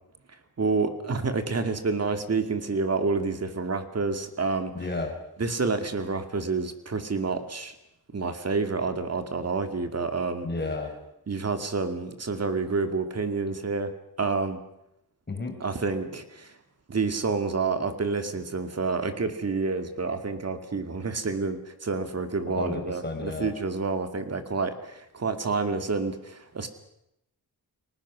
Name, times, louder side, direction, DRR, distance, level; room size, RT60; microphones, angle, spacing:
voice 1, 0.6-4.7 5.4-7.7 8.1-10.5 11.3-13.9 14.2-14.6 15.6-16.6 16.9-26.7, right 4 dB, 40° right, 7 dB, 2.4 m, -28 dB
voice 2, 4.7-5.1 10.4-10.9 15.3-15.6 22.5-23.5, left 3 dB, 25° left, 3 dB, 5.0 m, -32 dB
30.0 x 20.0 x 6.3 m, 0.82 s
wide cardioid pair, 175°, 38 cm